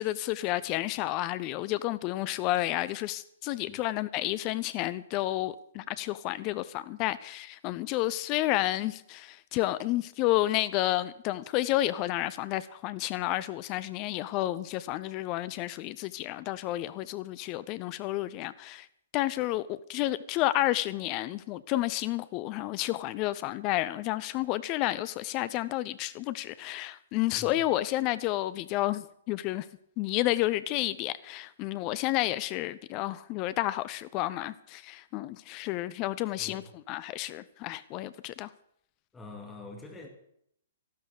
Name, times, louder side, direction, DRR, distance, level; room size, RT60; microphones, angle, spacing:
voice 1, 0.0-18.9 19.1-29.7 30.0-38.5, left 16 dB, 30° left, 0.6 m, -31 dB
voice 2, 27.3-27.6 36.4-36.7 39.1-40.1, left 2 dB, 10° left, 2.3 m, -45 dB
13.0 x 12.5 x 6.7 m
figure-of-eight pair, 115°, 0 cm